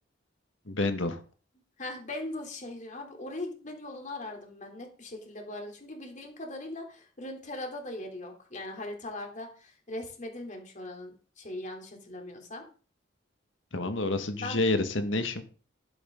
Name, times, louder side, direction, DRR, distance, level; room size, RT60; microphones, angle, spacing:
voice 1, 0.7-1.2 13.7-15.4, left 2 dB, 75° left, 7 dB, 1.9 m, -28 dB
voice 2, 1.8-12.6 14.4-14.6, left 1 dB, 40° left, 2 dB, 3.4 m, -40 dB
12.0 x 11.0 x 3.9 m, 0.38 s
head